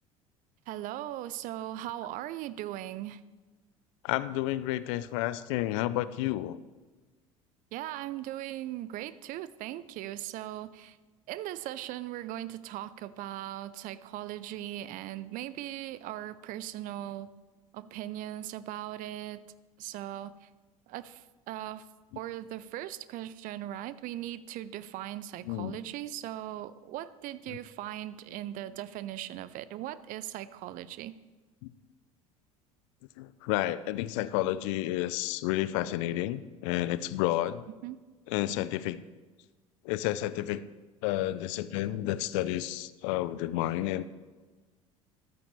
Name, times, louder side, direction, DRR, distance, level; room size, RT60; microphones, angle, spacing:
voice 1, 0.7-3.2 7.7-11.0 11.3-17.3 17.7-19.4 19.8-20.5 20.9-21.9 22.2-31.1 37.8-38.0, right 13 dB, 50° right, 16 dB, 0.6 m, -39 dB
voice 2, 4.0-6.6 25.5-25.8 31.6-31.7 33.2-37.6 38.3-39.0 39.8-40.6 41.0-44.0, left 14 dB, 60° left, 16 dB, 0.5 m, -31 dB
13.5 x 12.5 x 3.3 m, 1.3 s
figure-of-eight pair, 65°, 18 cm